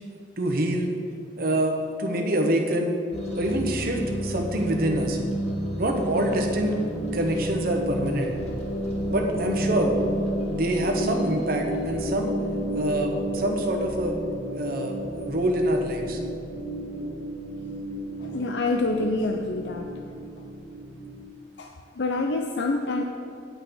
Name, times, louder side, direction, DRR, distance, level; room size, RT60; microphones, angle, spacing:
voice 1, 0.4-0.9 1.3-3.0 3.4-5.2 5.8-6.8 7.1-8.3 9.1-10.0 10.5-12.3 12.7-14.2 14.5-16.2, right 1 dB, 55° right, 2 dB, 1.1 m, -26 dB
sound 1, 3.1-21.2, equal, 35° left, 1.8 m, -31 dB
voice 2, 18.2-19.9 21.6-23.0, left 2 dB, 75° left, 2 dB, 0.6 m, -27 dB
9.1 x 5.3 x 7.9 m, 2.3 s
head